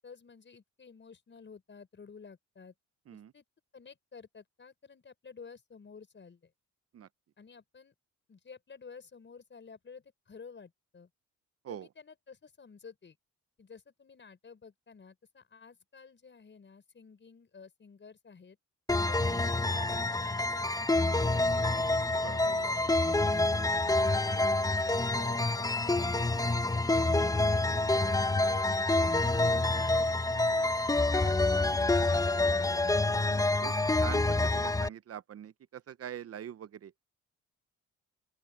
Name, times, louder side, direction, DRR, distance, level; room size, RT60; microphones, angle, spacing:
voice 1, 0.0-2.7 3.1-3.4 3.7-6.5 7.4-7.9 8.3-11.1 11.7-13.2 13.6-18.6 19.1-21.9 22.2-23.2 23.5-29.6 32.4-32.7, left 5 dB, 40° left, 6.2 m, -51 dB
sound 1, 18.9-34.9, left 2 dB, 10° left, 1.1 m, -27 dB
voice 2, 31.0-31.5 33.3-36.9, right 9 dB, 50° right, 0.8 m, -44 dB
open air
cardioid pair, 90°, 30 cm